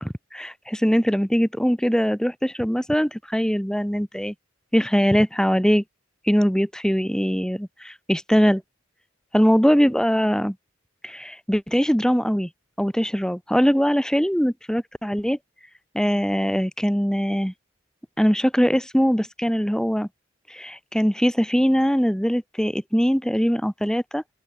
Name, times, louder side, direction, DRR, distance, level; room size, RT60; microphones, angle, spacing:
voice 1, 0.0-4.3 4.7-5.8 6.3-8.6 9.3-10.5 11.0-12.5 12.8-15.4 15.9-17.5 18.2-20.1 20.5-24.2, equal, 5° left, 2.5 m, -21 dB
open air
head